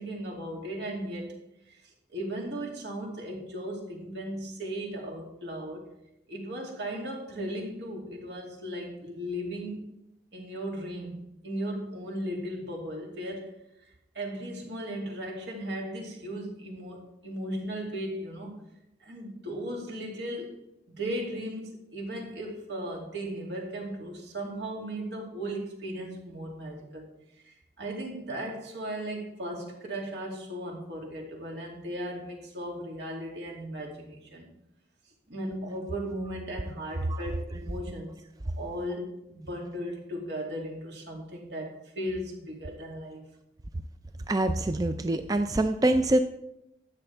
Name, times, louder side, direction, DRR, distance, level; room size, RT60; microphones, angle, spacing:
voice 1, 0.0-1.4 1.7-5.9 6.3-9.9 10.3-11.2 11.4-13.5 14.1-18.6 19.0-20.6 20.9-27.1 27.4-34.5 35.3-38.1 38.4-43.2, right 1 dB, 80° right, -1 dB, 2.6 m, -36 dB
voice 2, 44.3-46.2, right 1 dB, 20° right, 8 dB, 0.3 m, -25 dB
13.0 x 8.8 x 3.4 m, 0.85 s
head